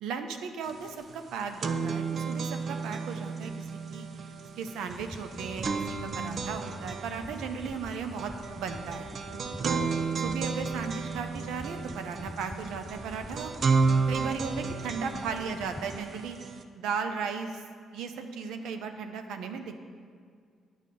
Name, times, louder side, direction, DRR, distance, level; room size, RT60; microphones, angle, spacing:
voice 1, 0.0-4.1 4.6-5.7 6.0-9.1 9.6-9.8 10.2-13.5 14.1-16.4 16.7-17.6 17.9-19.8, right 5 dB, 90° right, 7 dB, 0.7 m, -36 dB
sound 1, 0.7-0.8 1.1-16.6, right 4 dB, 50° right, 0.5 m, -32 dB
sound 2, 4.8-16.3, left 1 dB, 10° left, 0.3 m, -46 dB
8.5 x 6.3 x 5.3 m, 2.1 s
cardioid pair, 90°, 0 cm